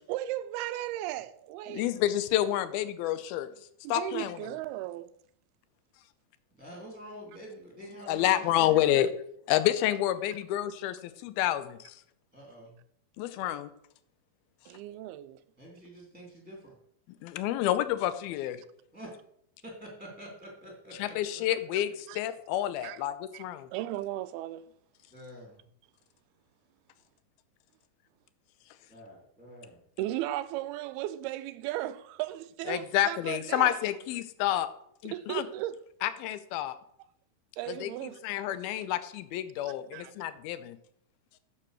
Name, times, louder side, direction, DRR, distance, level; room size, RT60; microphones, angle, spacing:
voice 1, 0.1-1.9 3.0-3.1 3.8-5.1 14.7-15.4 21.7-22.2 22.8-23.0 23.3-23.5 23.7-24.6 30.0-33.8 35.1-35.8 37.6-38.2 38.8-38.9 39.6-40.1, right 14 dB, 90° right, 2.6 m, -36 dB
voice 2, 1.7-3.5 3.9-4.4 8.1-9.1 9.5-12.0 13.2-13.7 17.2-18.6 21.0-23.7 32.7-34.7 35.0-35.5 36.0-36.8 37.7-40.8, left 13 dB, 85° left, 2.6 m, -29 dB
voice 3, 6.5-8.8 12.3-12.8 15.6-16.8 18.9-19.2 19.6-21.4 25.1-25.6 28.9-29.8, right 1 dB, 5° right, 1.8 m, -47 dB
9.5 x 7.1 x 6.4 m
omnidirectional pair, 4.4 m